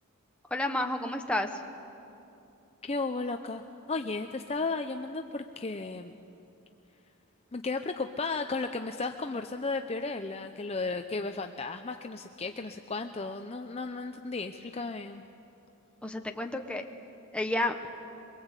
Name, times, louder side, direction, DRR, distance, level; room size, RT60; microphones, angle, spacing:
voice 1, 0.5-1.5 16.0-16.8 17.3-17.7, left 1 dB, 5° left, 3 dB, 1.2 m, -30 dB
voice 2, 2.8-3.6 3.9-6.2 7.5-15.3, left 3 dB, 30° left, 6 dB, 0.6 m, -34 dB
23.0 x 22.5 x 8.2 m, 2.7 s
head